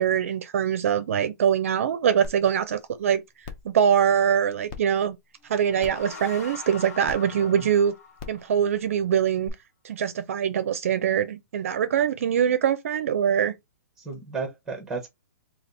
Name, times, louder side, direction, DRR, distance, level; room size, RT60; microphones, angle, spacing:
voice 1, 0.0-3.2 3.6-5.2 5.5-7.9 8.3-9.5 9.8-13.5, right 8 dB, 45° right, 0.5 m, -23 dB
sound 1, 2.2-2.3 2.8-2.9 3.4-3.7 4.7-4.8 5.8-6.1 7.0-7.2 8.2-8.4 9.5-9.6, left 5 dB, 30° left, 0.7 m, -38 dB
sound 2, 5.4-8.9, left 5 dB, 55° left, 0.9 m, -43 dB
voice 2, 14.0-15.1, right 4 dB, 5° right, 0.7 m, -34 dB
3.4 x 2.4 x 3.9 m
hypercardioid pair, 175°, 10 cm